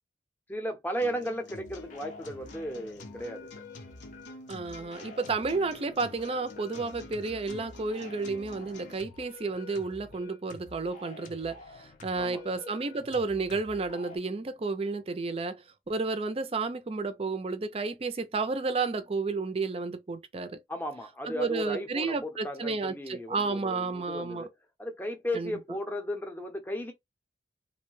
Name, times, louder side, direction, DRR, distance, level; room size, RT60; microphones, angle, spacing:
voice 1, 0.5-3.5 12.1-12.4 20.7-24.5 24.8-26.9, equal, 10° left, 0.6 m, -35 dB
sound 1, 1.0-9.0, left 3 dB, 85° left, 0.7 m, -49 dB
sound 2, 1.5-14.2, left 3 dB, 45° left, 0.6 m, -49 dB
voice 2, 4.5-20.6 21.3-24.5 25.3-25.5, right 3 dB, 35° right, 0.4 m, -32 dB
2.6 x 2.1 x 3.1 m
head